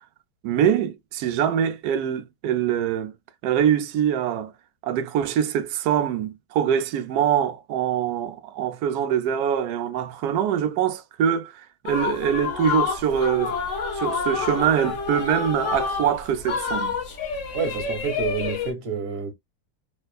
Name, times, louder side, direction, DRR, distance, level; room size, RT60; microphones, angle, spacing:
voice 1, 0.4-3.1 3.4-4.5 4.8-13.5 13.9-17.0, right 9 dB, 90° right, 0.8 m, -24 dB
sound 1, 11.9-18.7, left 5 dB, 75° left, 0.7 m, -28 dB
voice 2, 17.5-19.3, right 6 dB, 55° right, 1.4 m, -28 dB
3.3 x 3.0 x 2.2 m
omnidirectional pair, 2.3 m